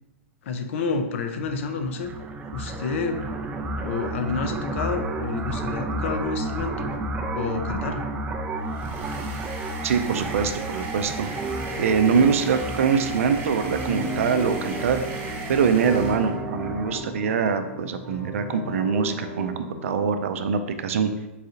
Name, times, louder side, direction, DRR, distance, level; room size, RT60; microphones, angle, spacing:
voice 1, 0.4-2.1 2.5-3.2 3.8-6.9 7.3-8.1, left 4 dB, 60° left, 6 dB, 0.6 m, -29 dB
sound 1, 1.4-17.0, right 2 dB, 15° right, 0.4 m, -32 dB
sound 2, 8.6-16.4, right 3 dB, 35° right, 1.1 m, -39 dB
voice 2, 9.8-11.3 11.8-15.0 15.5-19.5 19.8-21.1, right 6 dB, 75° right, 8 dB, 0.5 m, -23 dB
sound 3, 11.3-20.3, right 1 dB, ahead, 1.0 m, -35 dB
4.0 x 3.7 x 2.8 m, 1.0 s
hypercardioid pair, 135°, 8 cm